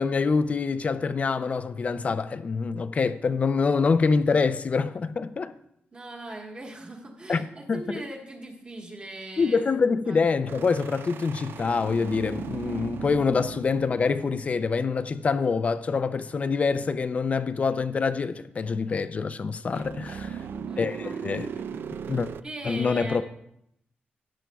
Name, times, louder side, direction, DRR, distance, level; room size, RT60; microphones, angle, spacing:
voice 1, 0.0-5.5 7.3-8.0 9.4-20.4 20.8-21.5 22.1-22.3 22.6-23.2, left 4 dB, 40° left, 0.4 m, -25 dB
voice 2, 5.9-9.6 10.1-10.2 20.3-21.3 21.6-21.8 22.4-23.2, right 2 dB, 30° right, 1.4 m, -40 dB
sound 1, 10.5-15.0 19.8-22.4, right 7 dB, 75° right, 0.4 m, -38 dB
13.5 x 9.6 x 2.3 m
wide cardioid pair, 145°, 4 cm